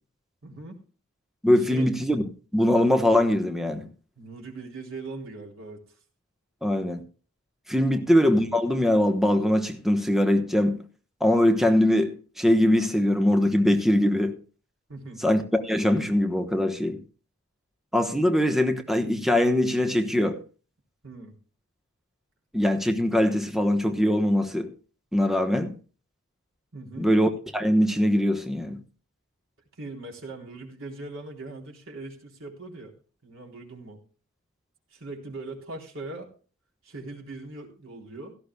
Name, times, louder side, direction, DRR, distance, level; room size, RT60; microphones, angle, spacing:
voice 1, 0.4-0.8 1.7-1.9 4.2-6.0 7.8-8.0 14.9-15.2 21.0-21.4 26.7-27.1 29.8-32.9 33.2-34.0 34.9-36.3 36.8-38.3, right 2 dB, 80° right, 3.8 m, -40 dB
voice 2, 1.4-2.2 2.5-3.9 6.6-7.0 7.7-10.8 11.2-14.4 15.2-17.0 17.9-20.4 22.5-24.7 25.1-25.7 27.0-28.8, left 1 dB, ahead, 1.1 m, -22 dB
17.0 x 14.0 x 2.3 m
head